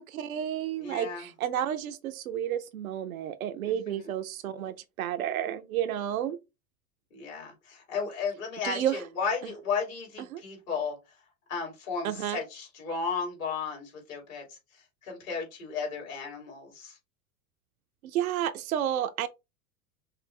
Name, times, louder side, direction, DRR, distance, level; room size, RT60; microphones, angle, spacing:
voice 1, 0.1-6.4 8.6-9.0 9.4-9.5 10.3-10.4 12.0-12.4 18.0-19.3, right 10 dB, 80° right, 0.7 m, -31 dB
voice 2, 0.8-1.3 3.6-4.1 7.1-11.0 11.5-17.0, left 5 dB, 70° left, 2.8 m, -34 dB
5.6 x 2.0 x 3.2 m
hypercardioid pair, 95°, 42 cm